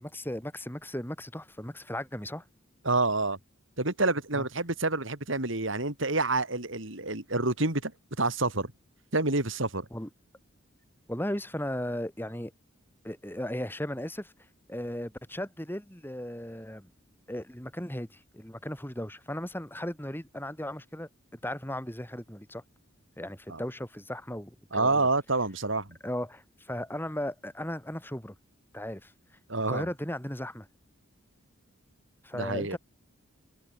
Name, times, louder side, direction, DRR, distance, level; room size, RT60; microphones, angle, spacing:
voice 1, 0.0-2.4 4.3-4.4 9.9-10.1 11.1-12.5 13.0-14.3 14.7-16.9 17.3-21.1 21.4-22.6 23.2-25.0 26.0-28.3 28.7-29.1 29.7-30.7 32.2-32.8, left 1 dB, 10° left, 4.7 m, -36 dB
voice 2, 2.9-3.4 3.8-7.9 8.2-8.7 9.1-9.9 23.5-23.6 24.7-25.9 29.5-29.9 32.3-32.8, right 2 dB, 65° right, 3.5 m, -28 dB
head